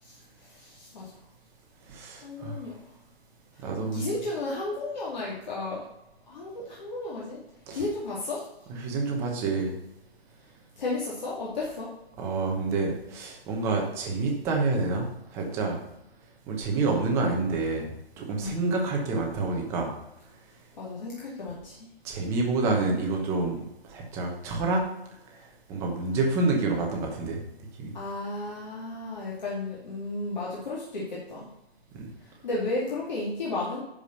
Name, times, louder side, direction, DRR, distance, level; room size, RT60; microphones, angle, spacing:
voice 1, 0.0-1.1 2.2-3.0 3.5-5.9 6.3-7.4 7.7-8.5 10.8-11.9 18.4-18.6 20.7-21.9 27.9-31.5 32.2-33.8, left 2 dB, 45° left, -5 dB, 2.8 m, -34 dB
voice 2, 1.9-2.6 3.6-4.1 7.7-7.8 8.8-9.7 12.2-15.8 16.5-17.9 18.2-19.9 22.0-24.8 25.3-25.4 25.7-27.4 27.8-27.9 31.9-32.1, right 3 dB, 10° right, 0 dB, 0.9 m, -28 dB
10.5 x 5.0 x 6.8 m, 0.89 s
hypercardioid pair, 170°, 31 cm